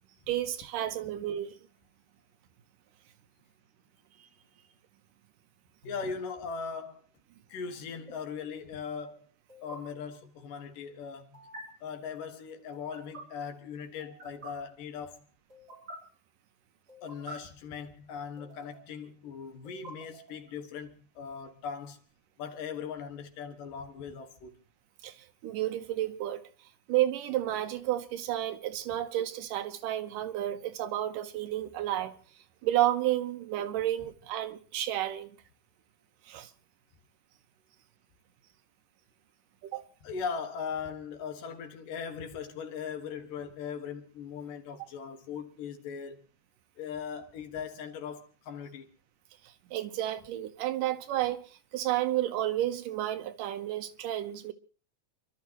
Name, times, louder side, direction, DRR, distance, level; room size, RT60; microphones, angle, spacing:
voice 1, 0.3-1.6 25.0-25.1 25.4-26.4 26.9-32.2 32.6-35.3 36.3-36.5 39.7-39.8 49.7-51.4 51.7-54.5, right 13 dB, 80° right, 2.6 m, -31 dB
voice 2, 5.8-7.0 7.5-9.3 9.6-11.5 11.8-15.3 17.0-22.0 22.4-24.5 39.7-46.3 46.8-48.9, left 6 dB, 85° left, 3.3 m, -39 dB
sound 1, 5.8-6.1 7.9-8.1 9.5-9.8 11.3-11.6 12.7-13.2 14.0-14.5 15.5-16.0 16.9-17.3 18.4-18.9 19.6-20.5, right 1 dB, 30° right, 4.7 m, -48 dB
29.0 x 12.5 x 3.0 m
omnidirectional pair, 3.7 m